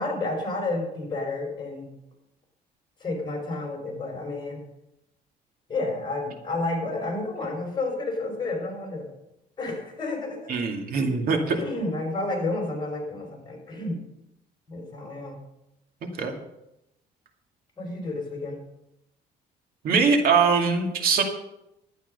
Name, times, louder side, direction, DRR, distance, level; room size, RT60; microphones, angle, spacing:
voice 1, 0.0-1.9 3.0-4.6 5.7-9.1 9.6-10.6 11.5-14.0 14.7-15.4 17.8-18.6, left 2 dB, 25° left, 1 dB, 5.3 m, -30 dB
voice 2, 10.5-11.6 16.2-16.3 19.8-21.2, right 5 dB, 60° right, 3 dB, 2.3 m, -22 dB
12.0 x 9.3 x 5.4 m, 0.86 s
cardioid pair, 110°, 17 cm